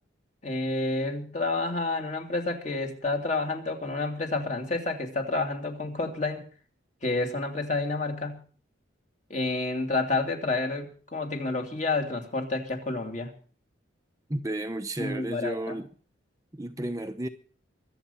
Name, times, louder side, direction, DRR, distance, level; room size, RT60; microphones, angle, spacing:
voice 1, 0.4-6.5 7.0-8.4 9.3-13.3 15.0-15.8, left 3 dB, 40° left, 2.7 m, -29 dB
voice 2, 14.3-15.9 16.5-17.3, right 1 dB, 20° right, 0.8 m, -32 dB
24.0 x 8.3 x 5.6 m
head